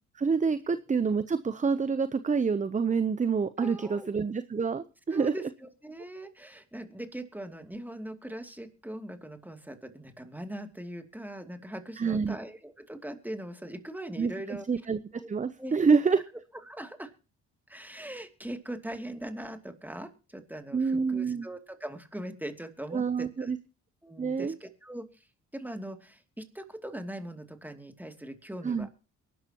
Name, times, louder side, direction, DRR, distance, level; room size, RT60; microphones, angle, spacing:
voice 1, 0.2-5.3 12.0-12.4 14.2-15.0 15.3-16.2 20.7-21.5 22.9-23.6 24.2-24.6 28.6-28.9, right 5 dB, 25° right, 13 dB, 0.7 m, -27 dB
voice 2, 3.6-4.1 5.1-14.7 15.1-15.3 15.6-15.7 16.7-17.1 17.7-23.5 24.0-25.3 25.5-28.9, right 1 dB, 5° right, 7 dB, 2.7 m, -41 dB
23.0 x 11.5 x 3.0 m, 0.33 s
supercardioid pair, 65°, 31 cm